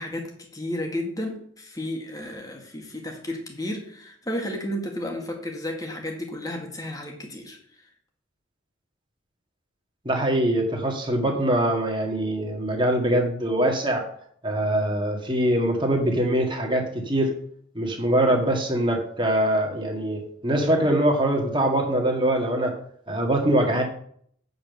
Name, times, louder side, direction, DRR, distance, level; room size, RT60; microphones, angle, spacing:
voice 1, 0.0-7.9, left 1 dB, 20° left, 1.9 m, -33 dB
voice 2, 10.0-14.0 14.4-17.3 17.7-22.7 23.1-23.8, right 1 dB, 25° right, 1.8 m, -23 dB
8.6 x 5.4 x 6.8 m
head